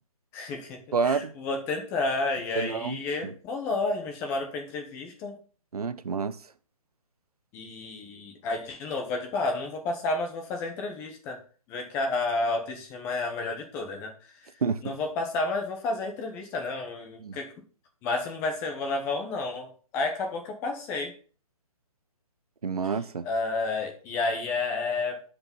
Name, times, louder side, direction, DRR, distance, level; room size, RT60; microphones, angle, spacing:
voice 1, 0.3-5.4 7.5-11.4 11.7-14.1 14.8-17.5 18.0-21.1 23.2-25.2, left 3 dB, 15° left, 1.1 m, -31 dB
voice 2, 0.9-1.3 2.6-3.3 5.7-6.3 14.6-14.8 17.2-17.4 22.6-23.3, right 5 dB, 90° right, 0.9 m, -28 dB
9.1 x 5.1 x 5.4 m
hypercardioid pair, 165°, 19 cm